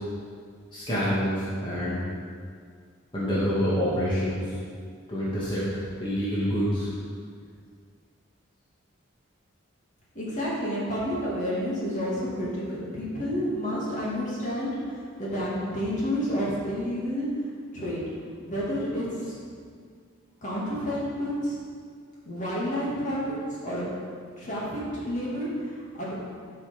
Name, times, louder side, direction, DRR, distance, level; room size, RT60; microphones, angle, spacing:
voice 1, 0.7-2.0 3.1-4.5 5.1-5.7 6.0-6.9, equal, 25° left, -9 dB, 2.3 m, -27 dB
voice 2, 10.1-17.3 17.7-18.0 18.4-19.4 20.4-21.6 22.2-23.9 24.4-26.1, equal, 40° left, -7 dB, 2.5 m, -30 dB
12.5 x 5.8 x 5.4 m, 2.1 s
head